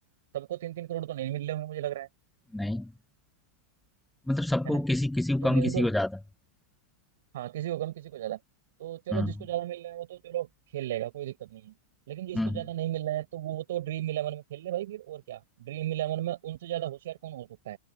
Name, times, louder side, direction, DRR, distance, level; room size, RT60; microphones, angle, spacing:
voice 1, 0.3-2.1 4.6-4.8 5.4-5.9 7.3-8.4 8.8-11.7 12.1-17.8, right 13 dB, 65° right, 6.7 m, -34 dB
voice 2, 2.5-2.9 4.3-6.1 9.1-9.3 12.3-12.5, left 1 dB, 5° left, 0.5 m, -27 dB
hypercardioid pair, 110°, 0 cm